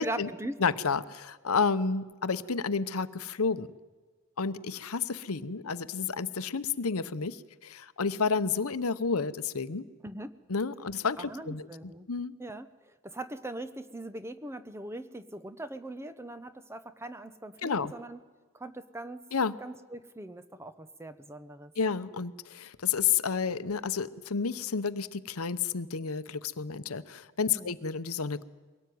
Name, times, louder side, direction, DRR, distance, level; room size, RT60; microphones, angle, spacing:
voice 1, 0.0-0.5 10.0-10.3 11.2-12.1 12.4-18.2 18.5-19.2 19.6-21.7 27.5-27.8, right 1 dB, 10° right, 12 dB, 0.9 m, -41 dB
voice 2, 0.6-3.7 4.4-9.9 10.5-11.7 12.1-12.3 17.6-17.9 19.3-19.6 21.8-28.4, left 5 dB, 85° left, 14 dB, 0.9 m, -30 dB
23.0 x 18.0 x 9.4 m, 1.3 s
head